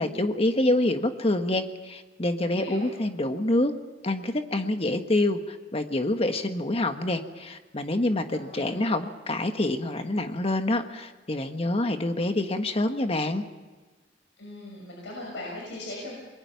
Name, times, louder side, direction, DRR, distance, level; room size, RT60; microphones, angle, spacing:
voice 1, 0.0-3.7 4.0-13.4, left 1 dB, 35° left, 7 dB, 1.4 m, -26 dB
voice 2, 2.4-2.9 8.3-8.8 14.4-16.2, left 1 dB, 80° left, -3 dB, 6.3 m, -39 dB
28.5 x 21.5 x 5.8 m, 1.3 s
head